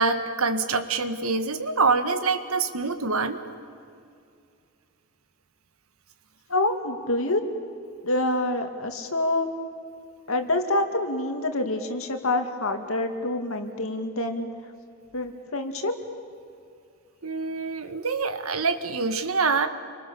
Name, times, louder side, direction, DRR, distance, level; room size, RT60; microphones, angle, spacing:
voice 1, 0.0-3.4 17.2-19.7, right 4 dB, 75° right, 9 dB, 1.7 m, -25 dB
voice 2, 6.5-7.4 8.0-9.5 10.3-14.5 15.1-15.9, left 2 dB, 70° left, 5 dB, 2.5 m, -26 dB
29.5 x 25.0 x 7.1 m, 2.4 s
head